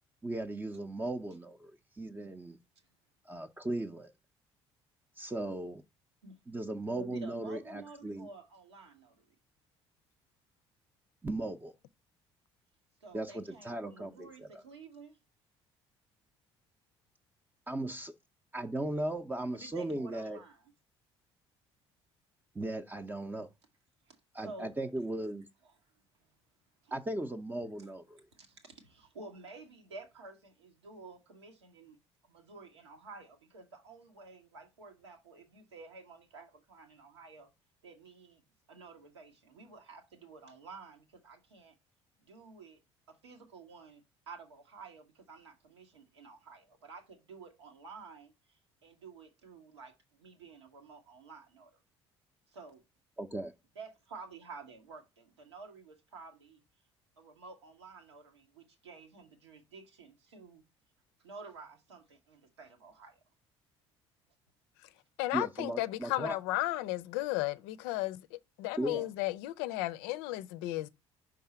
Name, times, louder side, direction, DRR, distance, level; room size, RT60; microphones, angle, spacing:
voice 1, 0.2-2.6 3.2-4.1 5.2-5.8 6.5-8.3 11.2-11.7 13.1-14.6 17.7-18.1 18.5-20.4 22.5-23.5 24.3-25.5 26.9-28.2 53.2-53.5 65.3-66.4 68.8-69.1, right 1 dB, 15° right, 0.6 m, -37 dB
voice 2, 6.9-9.3 13.0-15.2 19.5-20.7 24.1-24.2 24.4-24.7 25.6-26.0 26.8-26.9 27.8-27.9 28.3-32.0 32.2-37.5 37.8-38.4 38.7-41.7 42.2-42.8 43.1-51.8 52.5-52.8 53.7-56.6 57.2-60.6 61.2-63.2, right 4 dB, 80° right, 1.2 m, -51 dB
voice 3, 65.2-70.9, left 17 dB, 65° left, 0.5 m, -34 dB
5.5 x 3.7 x 5.7 m
figure-of-eight pair, 50°, 14 cm